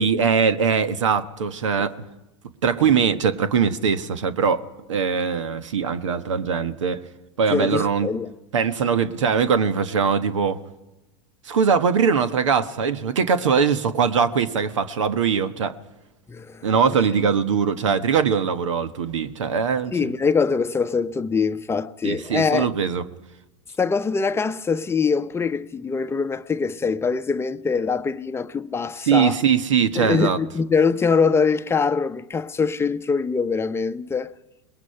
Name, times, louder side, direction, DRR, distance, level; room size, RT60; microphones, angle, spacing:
voice 1, 0.0-1.9 2.6-4.6 4.9-7.0 7.4-8.1 8.5-10.6 11.4-15.8 16.6-20.1 22.0-23.0 29.1-30.4, right 6 dB, 85° right, 1.3 m, -21 dB
voice 2, 7.5-8.3 16.3-16.7 19.9-22.7 23.8-29.4 30.0-34.3, left 5 dB, 15° left, 0.7 m, -23 dB
26.5 x 20.5 x 5.7 m
hypercardioid pair, 110°, 15 cm